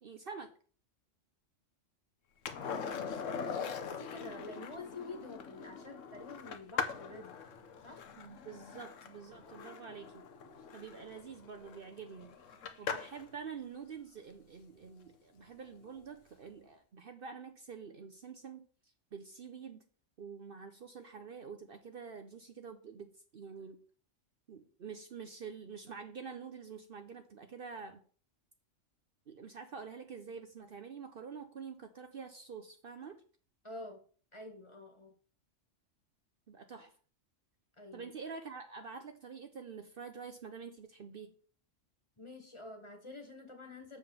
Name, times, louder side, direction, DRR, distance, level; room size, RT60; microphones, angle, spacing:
voice 1, 0.0-0.5 8.2-10.2 10.7-12.3 12.8-18.7 19.1-19.8 20.2-23.8 24.5-28.0 29.3-33.2 36.5-36.9 37.9-41.3, right 6 dB, 55° right, 7 dB, 0.9 m, -47 dB
Skateboard, 2.5-13.3 15.9-16.0, left 6 dB, 90° left, 1.3 m, -42 dB
voice 2, 2.6-7.4 7.8-8.0 9.4-9.5 33.6-34.0 34.3-35.1 37.8-38.1 42.2-44.0, left 2 dB, 25° left, 4 dB, 1.5 m, -48 dB
6.9 x 4.8 x 6.9 m, 0.43 s
omnidirectional pair, 1.3 m